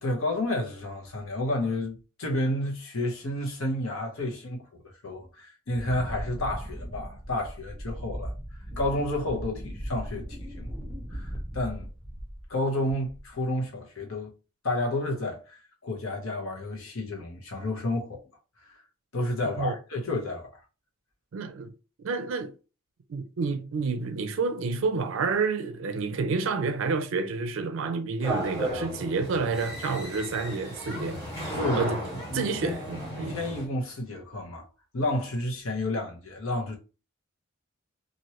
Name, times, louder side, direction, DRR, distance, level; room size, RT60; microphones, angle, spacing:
voice 1, 0.0-4.7 5.0-8.3 8.8-10.7 11.1-11.9 12.5-14.3 14.6-18.2 18.7-18.8 19.1-20.5 31.5-31.9 32.3-32.8 33.2-34.6 34.9-36.8, left 1 dB, 80° left, 1.0 m, -31 dB
Wind, 5.7-12.5 12.9-13.3, equal, ahead, 0.6 m, -38 dB
voice 2, 21.3-21.7 22.0-22.5 23.1-31.2 31.8-32.0 32.3-33.4, right 4 dB, 65° right, 0.4 m, -29 dB
sound 1, 28.2-33.7, right 1 dB, 20° left, 1.6 m, -35 dB
3.0 x 2.6 x 2.9 m
head